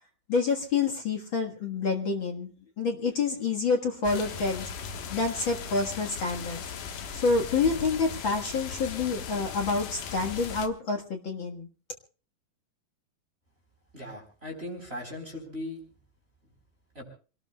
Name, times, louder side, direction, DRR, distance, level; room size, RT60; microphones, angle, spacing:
voice 1, 0.3-2.5 2.8-4.7 5.1-6.6 7.1-11.7, left 4 dB, 45° left, 3 dB, 1.7 m, -28 dB
sound 1, 4.0-10.7, left 6 dB, 70° left, 2.8 m, -38 dB
voice 2, 13.9-15.8 16.9-17.0, left 1 dB, 15° right, 1 dB, 4.1 m, -38 dB
27.0 x 18.5 x 2.3 m, 0.38 s
omnidirectional pair, 4.0 m